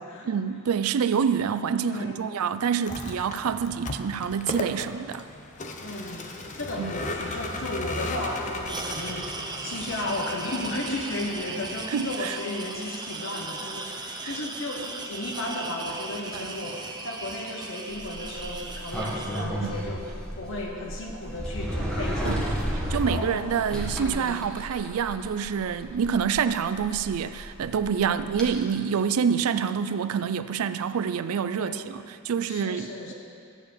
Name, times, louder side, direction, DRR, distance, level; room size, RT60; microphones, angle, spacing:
voice 1, 0.3-5.2 6.8-6.9 11.9-12.4 14.2-14.3 16.3-16.5 19.6-19.7 22.2-22.4 22.9-33.1, right 7 dB, 75° right, 12 dB, 0.4 m, -27 dB
voice 2, 1.8-2.2 5.8-6.3 6.5-9.3 9.6-23.4 24.0-24.4 28.0-28.3 31.5-32.0 32.5-33.1, left 1 dB, 60° left, 0 dB, 1.1 m, -34 dB
Vehicle, 2.7-12.1, left 2 dB, 35° left, 0.7 m, -36 dB
sound 1, 8.6-19.5, right 3 dB, 20° right, 0.7 m, -37 dB
Sliding door, 17.9-28.5, equal, 5° left, 1.6 m, -33 dB
13.5 x 4.8 x 8.6 m, 2.5 s
head